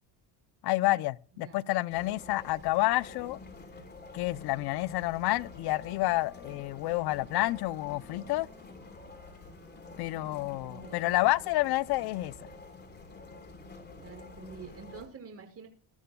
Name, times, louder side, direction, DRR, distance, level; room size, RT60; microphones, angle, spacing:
voice 1, 0.6-3.4 4.1-8.5 10.0-12.3, left 18 dB, 60° left, 0.7 m, -29 dB
sound 1, 1.9-15.1, left 3 dB, 25° left, 3.6 m, -49 dB
Wind instrument woodwind instrument, 4.1-11.5, right 1 dB, 5° right, 7.3 m, -60 dB
voice 2, 10.0-11.3 14.0-15.7, right 5 dB, 35° right, 5.9 m, -48 dB
22.5 x 12.5 x 2.3 m
cardioid pair, 130°, 43 cm